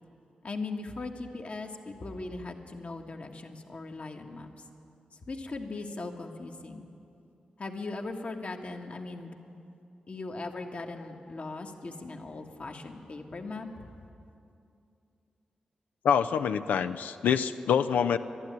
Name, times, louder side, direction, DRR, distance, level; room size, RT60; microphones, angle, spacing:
voice 1, 0.4-4.6 5.3-6.9 7.6-9.3 10.1-13.9, left 3 dB, 55° left, 3 dB, 1.5 m, -39 dB
voice 2, 16.0-18.2, left 7 dB, 85° left, 11 dB, 0.5 m, -26 dB
12.0 x 11.5 x 9.5 m, 2.7 s
supercardioid pair, 45°, 3 cm